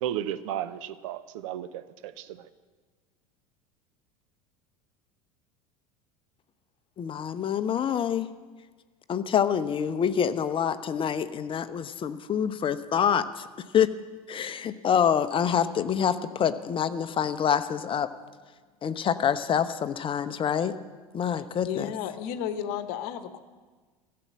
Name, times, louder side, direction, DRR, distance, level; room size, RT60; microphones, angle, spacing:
voice 1, 0.0-2.5, right 11 dB, 55° right, 14 dB, 0.7 m, -34 dB
voice 2, 7.0-8.3 9.1-13.5 13.7-13.9 14.3-18.1 18.8-20.7 21.1-21.9, left 8 dB, 25° left, 12 dB, 0.8 m, -26 dB
voice 3, 21.6-23.4, left 9 dB, 50° left, 11 dB, 1.1 m, -33 dB
15.5 x 7.7 x 8.8 m, 1.4 s
figure-of-eight pair, 75°, 19 cm